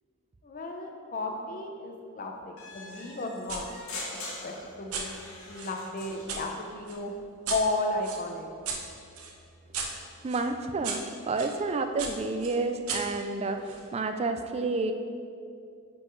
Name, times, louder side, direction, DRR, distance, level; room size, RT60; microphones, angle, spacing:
voice 1, 0.4-3.7 4.4-5.1 5.5-7.1 7.5-8.5, left 2 dB, 40° left, 2 dB, 0.7 m, -33 dB
sound 1, 2.6-6.6, left 2 dB, 70° left, 1.4 m, -43 dB
sound 2, 3.5-3.7 4.1-6.4 6.9-11.5 12.0-13.9, right 5 dB, 85° right, 0.8 m, -38 dB
voice 2, 10.2-14.9, right 3 dB, 30° right, 7 dB, 0.4 m, -30 dB
9.5 x 4.4 x 3.2 m, 2.3 s
head